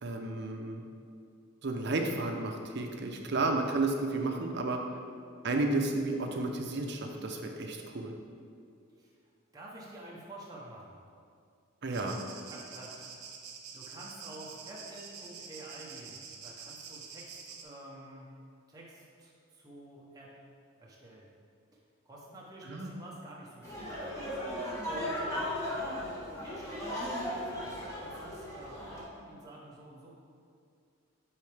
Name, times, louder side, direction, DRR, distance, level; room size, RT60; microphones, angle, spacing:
voice 1, 0.0-0.8 1.6-4.8 5.4-8.1 11.8-12.2 22.7-22.9, right 2 dB, 50° right, 3 dB, 0.6 m, -32 dB
voice 2, 9.5-11.0 12.5-13.3 13.7-18.3 18.7-20.3 20.8-21.3 22.0-26.1 26.4-30.1, right 1 dB, 15° right, -5 dB, 0.7 m, -49 dB
sound 1, 11.9-17.6, right 6 dB, 85° right, 0.8 m, -47 dB
sound 2, 23.6-29.0, left 1 dB, 15° left, 1.2 m, -36 dB
8.8 x 3.9 x 3.3 m, 2.4 s
head